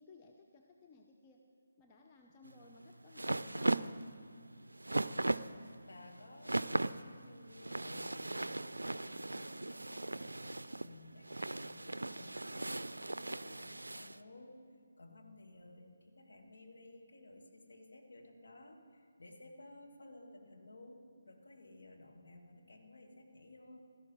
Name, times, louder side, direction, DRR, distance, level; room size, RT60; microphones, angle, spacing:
voice 1, 0.0-1.4 1.8-3.8, left 3 dB, 20° left, 1 dB, 0.7 m, -59 dB
sound 1, 2.5-14.2, right 2 dB, 70° right, 0.4 m, -38 dB
voice 2, 5.8-14.6 15.0-23.8, left 2 dB, 55° left, 1 dB, 2.0 m, -56 dB
16.5 x 13.5 x 4.5 m, 2.3 s
figure-of-eight pair, 150°, 0 cm